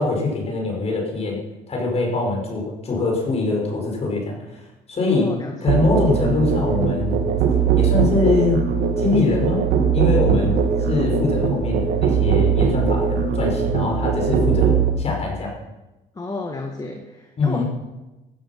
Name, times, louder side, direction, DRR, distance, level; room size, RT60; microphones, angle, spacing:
voice 1, 0.0-1.4 1.7-4.6 4.9-5.3 5.6-7.3 7.8-8.6 9.0-10.6 10.9-15.5 17.4-17.6, left 3 dB, 40° left, 0 dB, 5.3 m, -23 dB
voice 2, 5.1-5.8 10.3-10.6 16.1-17.6, left 3 dB, 20° left, 3 dB, 1.7 m, -31 dB
Musical instrument, 5.7-14.9, right 7 dB, 80° right, 2.2 m, -20 dB
14.5 x 13.5 x 5.9 m, 1.1 s
cardioid pair, 110°, 17 cm